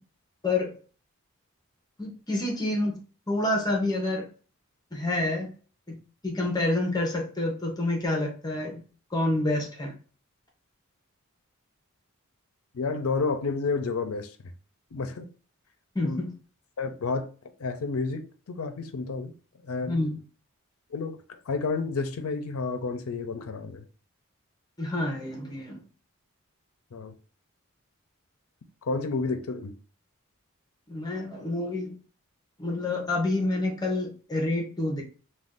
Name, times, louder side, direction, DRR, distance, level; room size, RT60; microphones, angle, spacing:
voice 1, 2.0-3.0 3.3-4.3 4.9-5.5 5.9-6.0 6.2-8.8 9.1-9.9 15.9-16.3 19.8-20.2 24.8-25.8 30.9-31.9 32.6-35.0, left 2 dB, 20° left, 0.7 m, -28 dB
voice 2, 12.7-14.3 14.9-15.3 16.0-16.2 16.8-17.3 17.6-19.3 19.6-20.0 20.9-23.8 26.9-27.1 28.9-29.7, left 4 dB, 75° left, 0.5 m, -30 dB
2.5 x 2.3 x 3.5 m
head